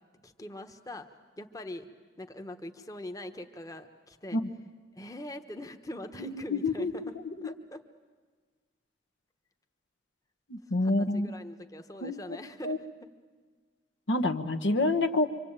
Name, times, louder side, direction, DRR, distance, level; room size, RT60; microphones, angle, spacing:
voice 1, 0.2-1.1 1.4-1.9 2.2-4.4 4.9-7.0 7.4-7.8 10.8-13.1, left 1 dB, 20° left, 6 dB, 1.1 m, -42 dB
voice 2, 6.2-7.5 10.5-11.3 12.0-12.2 12.6-12.8 14.1-15.3, left 2 dB, 75° left, 10 dB, 1.2 m, -28 dB
26.0 x 25.5 x 8.9 m, 1.5 s
head